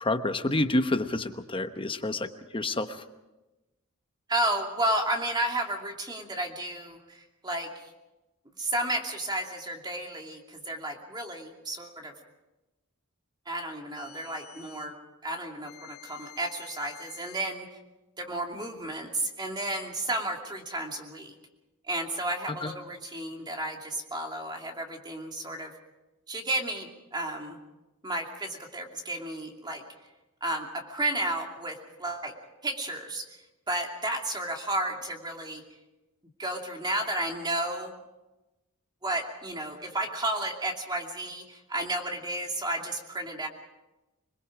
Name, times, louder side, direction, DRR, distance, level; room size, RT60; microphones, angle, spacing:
voice 1, 0.0-2.3 2.5-3.0 22.5-22.7, left 2 dB, 25° left, 8 dB, 1.0 m, -28 dB
voice 2, 4.3-7.9 8.6-12.1 13.5-14.9 15.2-17.7 18.2-21.3 21.9-25.7 26.3-27.6 28.0-29.8 30.4-32.3 32.6-33.3 33.7-35.6 36.4-38.0 39.0-43.5, right 1 dB, 20° right, 2 dB, 2.6 m, -32 dB
sound 1, 13.9-14.9 15.6-17.5, left 13 dB, 80° left, 1.9 m, -50 dB
26.5 x 21.0 x 4.9 m, 1.0 s
head